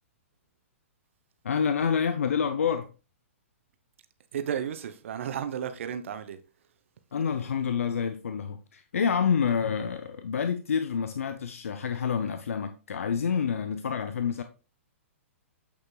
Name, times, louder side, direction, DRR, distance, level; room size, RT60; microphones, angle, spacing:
voice 1, 1.4-2.9 7.1-14.4, left 6 dB, 70° left, 0.6 m, -28 dB
voice 2, 4.3-6.4, right 8 dB, 60° right, 0.8 m, -33 dB
8.4 x 6.2 x 2.3 m
figure-of-eight pair, 115°, 8 cm